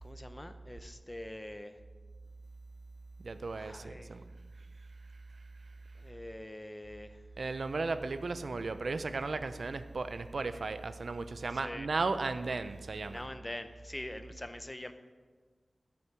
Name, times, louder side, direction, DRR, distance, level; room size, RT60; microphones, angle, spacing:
voice 1, 0.0-1.8 3.5-4.2 5.9-7.3 11.5-11.9 13.1-14.9, left 1 dB, 20° left, 0.7 m, -44 dB
voice 2, 3.2-4.2 7.4-13.2, right 3 dB, 85° right, 0.5 m, -35 dB
14.0 x 7.1 x 4.9 m
wide cardioid pair, 75°, 0 cm